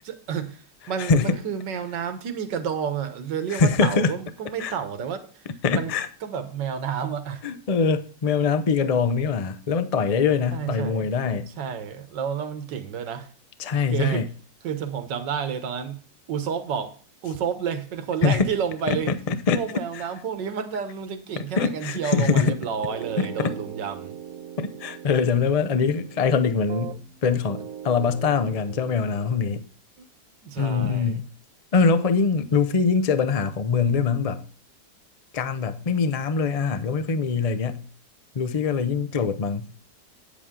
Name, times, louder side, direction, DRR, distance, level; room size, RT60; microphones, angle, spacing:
voice 1, 0.0-5.4 5.7-5.9 6.2-7.4 10.5-11.1 11.5-13.3 13.9-14.3 14.6-16.0 16.3-16.9 17.2-19.1 19.5-24.2 30.0-30.1 30.4-31.2, right 7 dB, 90° right, 1.8 m, -30 dB
voice 2, 1.0-1.3 3.5-4.1 4.6-4.7 5.6-6.1 7.4-11.5 13.6-14.3 18.2-18.5 18.9-19.6 19.9-20.0 21.6-22.6 23.2-23.5 24.6-29.6 30.6-31.2 31.7-34.4 35.3-37.9 38.3-39.7, left 5 dB, 60° left, 0.3 m, -23 dB
sound 1, 22.2-27.2 27.5-29.6, right 10 dB, 65° right, 1.0 m, -40 dB
9.4 x 8.3 x 3.7 m
omnidirectional pair, 1.9 m